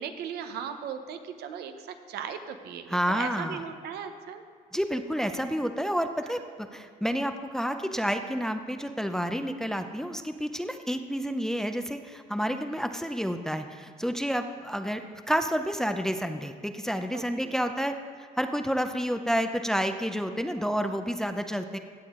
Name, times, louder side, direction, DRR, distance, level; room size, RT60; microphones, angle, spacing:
voice 1, 0.0-4.4 12.7-12.9 17.1-17.5 20.8-20.9, right 7 dB, 75° right, 7 dB, 0.9 m, -38 dB
voice 2, 2.9-3.6 4.7-21.8, equal, 5° left, 7 dB, 0.5 m, -30 dB
16.5 x 7.1 x 3.7 m, 2.2 s
cardioid pair, 110°, 17 cm